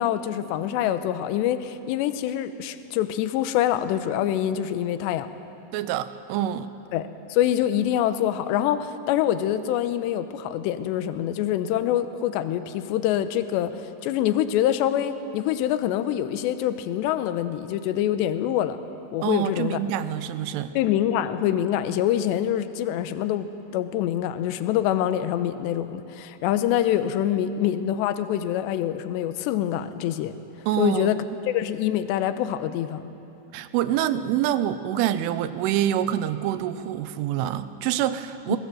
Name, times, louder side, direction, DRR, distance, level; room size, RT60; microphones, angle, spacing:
voice 1, 0.0-5.3 6.9-18.8 19.1-19.8 20.8-30.3 30.8-31.2 31.4-33.0 38.5-38.6, left 11 dB, 75° left, 11 dB, 2.8 m, -25 dB
voice 2, 5.7-6.7 19.2-20.7 30.7-31.2 33.5-38.6, right 11 dB, 85° right, 12 dB, 3.3 m, -26 dB
25.0 x 19.5 x 7.8 m, 2.9 s
omnidirectional pair, 5.6 m